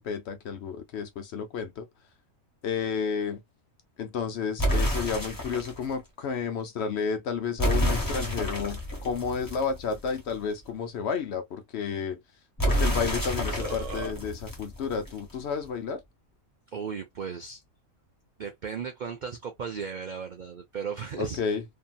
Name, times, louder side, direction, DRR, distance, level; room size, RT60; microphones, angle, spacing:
voice 1, 0.0-1.9 2.6-3.4 4.0-12.2 12.7-16.0 21.2-21.6, left 6 dB, 60° left, 0.8 m, -31 dB
sound 1, 4.6-5.8 7.6-10.3 12.6-15.3, equal, 15° left, 1.0 m, -29 dB
Burping eructation, 13.3-14.1, right 1 dB, 55° right, 0.8 m, -37 dB
voice 2, 16.7-17.6 18.4-21.4, right 6 dB, 80° right, 0.4 m, -36 dB
2.7 x 2.6 x 2.2 m
omnidirectional pair, 1.4 m